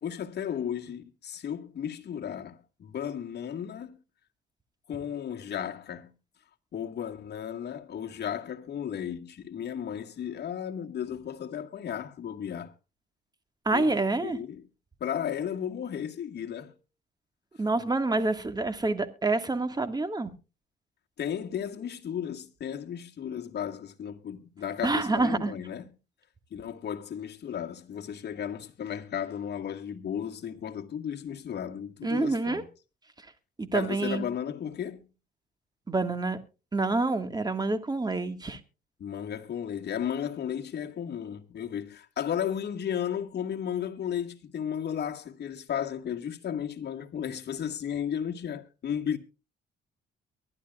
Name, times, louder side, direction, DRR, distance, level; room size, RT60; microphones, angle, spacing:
voice 1, 0.0-4.0 4.9-6.1 6.7-12.7 13.7-14.6 15.0-16.8 21.2-25.8 26.5-32.6 33.7-35.0 39.0-49.2, left 9 dB, 55° left, 1.8 m, -34 dB
voice 2, 13.6-14.4 17.6-20.3 24.8-25.5 32.0-32.6 33.6-34.3 35.9-36.4 36.7-38.6, right 3 dB, 20° right, 1.8 m, -27 dB
23.5 x 11.0 x 2.4 m
cardioid pair, 90°, 20 cm